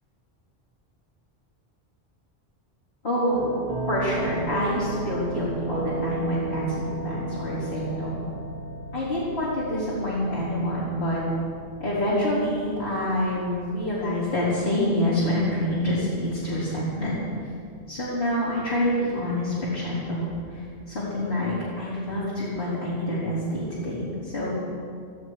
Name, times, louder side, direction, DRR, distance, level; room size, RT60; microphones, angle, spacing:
voice 1, 3.0-3.5 3.9-8.3 8.9-11.2 11.8-17.2 17.9-24.5, left 1 dB, 65° left, -10 dB, 4.1 m, -27 dB
sound 1, 3.3-19.8, right 3 dB, 50° right, 1.3 m, -36 dB
17.0 x 14.5 x 4.8 m, 2.3 s
omnidirectional pair, 1.0 m